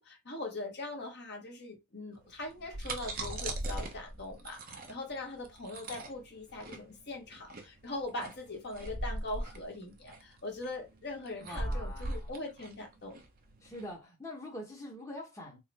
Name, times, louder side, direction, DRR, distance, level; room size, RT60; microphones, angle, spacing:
voice 1, 0.0-13.2, left 2 dB, 50° left, 1.2 m, -41 dB
sound 1, 2.4-13.8, right 1 dB, 40° right, 0.7 m, -39 dB
voice 2, 11.4-12.3 13.6-15.6, left 1 dB, 15° left, 1.0 m, -44 dB
3.9 x 2.0 x 4.0 m
head